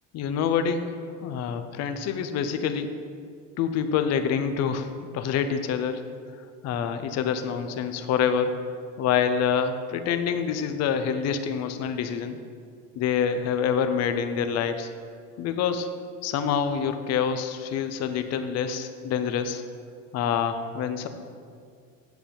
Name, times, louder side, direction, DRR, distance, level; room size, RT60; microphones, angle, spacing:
voice 1, 0.1-0.9 1.2-2.9 3.6-6.0 6.6-8.6 9.0-12.4 13.0-14.9 15.4-15.9 16.2-19.6 20.1-21.1, left 7 dB, 45° left, 8 dB, 0.6 m, -26 dB
8.0 x 6.8 x 4.3 m, 2.2 s
cardioid pair, 135°, 39 cm